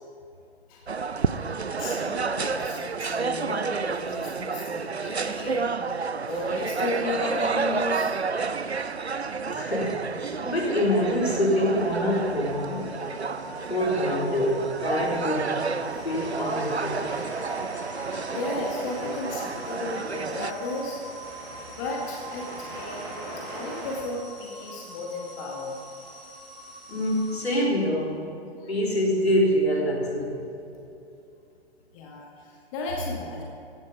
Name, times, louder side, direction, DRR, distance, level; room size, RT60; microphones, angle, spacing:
sound 1, 0.9-20.5, right 5 dB, 90° right, 0.6 m, -30 dB
voice 1, 1.8-5.7 6.3-8.2 13.5-13.7 16.7-16.8 18.3-21.0 21.7-25.8 28.6-28.7 31.9-33.4, left 2 dB, 30° left, -1 dB, 2.0 m, -34 dB
voice 2, 9.5-12.9 13.7-15.5 16.0-17.1 26.9-28.2 28.7-30.4, equal, 80° left, -3 dB, 3.8 m, -25 dB
sound 2, 11.7-27.6, equal, ahead, 2.6 m, -44 dB
sound 3, 15.8-24.0, right 2 dB, 35° right, 3.1 m, -41 dB
16.0 x 10.5 x 5.0 m, 2.7 s
figure-of-eight pair, 120°, 31 cm